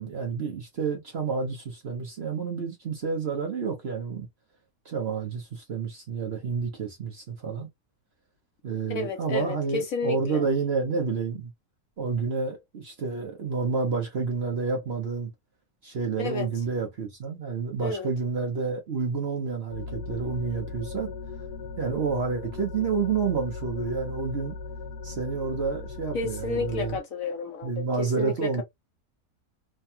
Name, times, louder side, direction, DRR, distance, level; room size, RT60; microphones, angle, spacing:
voice 1, 0.0-4.3 4.8-7.7 8.6-11.5 12.0-15.3 15.8-21.1 21.8-24.5 25.0-27.0 27.6-28.6, right 5 dB, 50° right, 0.9 m, -29 dB
voice 2, 8.9-10.5 16.2-16.5 17.8-18.1 26.1-28.5, left 3 dB, 60° left, 1.1 m, -31 dB
sound 1, 19.7-27.0, left 4 dB, 90° left, 1.3 m, -38 dB
3.3 x 2.2 x 2.7 m
omnidirectional pair, 1.7 m